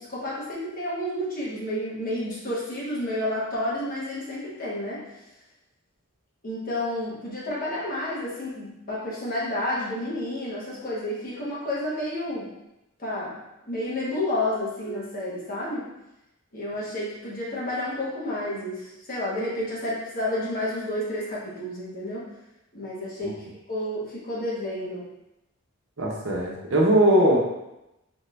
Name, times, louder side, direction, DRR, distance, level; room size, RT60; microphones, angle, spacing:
voice 1, 0.0-5.0 6.4-12.5 13.0-13.4 13.7-15.9 16.5-22.2 22.7-25.0, left 1 dB, 40° left, -7 dB, 1.3 m, -30 dB
voice 2, 26.0-27.4, right 1 dB, 65° right, -2 dB, 0.9 m, -20 dB
4.2 x 2.8 x 3.3 m, 0.91 s
head